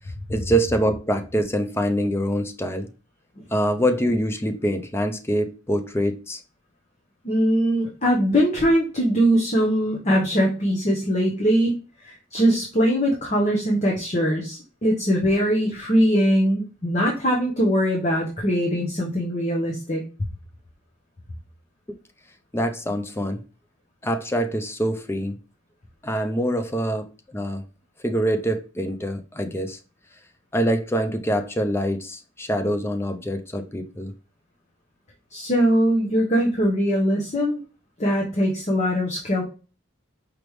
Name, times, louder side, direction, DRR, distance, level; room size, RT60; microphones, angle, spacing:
voice 1, 0.3-2.9 3.5-6.4 21.9-22.0 22.5-23.4 24.0-25.4 26.0-27.6 28.0-29.8 30.5-34.1, equal, 10° left, 0.5 m, -25 dB
voice 2, 7.2-11.7 12.0-20.0 35.3-37.6 38.0-39.4, equal, 35° left, 0.9 m, -21 dB
5.0 x 3.4 x 3.1 m
head